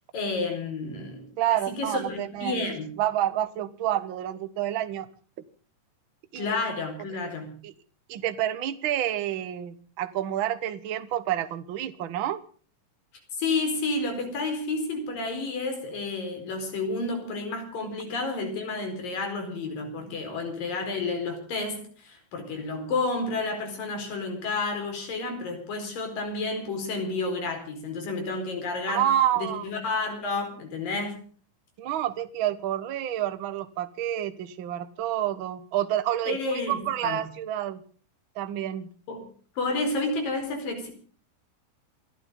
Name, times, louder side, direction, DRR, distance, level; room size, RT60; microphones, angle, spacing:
voice 1, 0.1-2.9 6.4-7.6 13.3-29.1 29.4-31.2 36.3-37.3 39.1-39.2 39.6-40.9, left 3 dB, 75° left, 5 dB, 6.2 m, -31 dB
voice 2, 1.4-2.6 3.0-5.1 6.3-6.5 7.6-7.7 8.1-12.4 28.9-29.6 31.8-37.8 38.3-38.9, right 12 dB, 60° right, 12 dB, 1.3 m, -28 dB
29.0 x 12.0 x 3.7 m, 0.42 s
omnidirectional pair, 4.0 m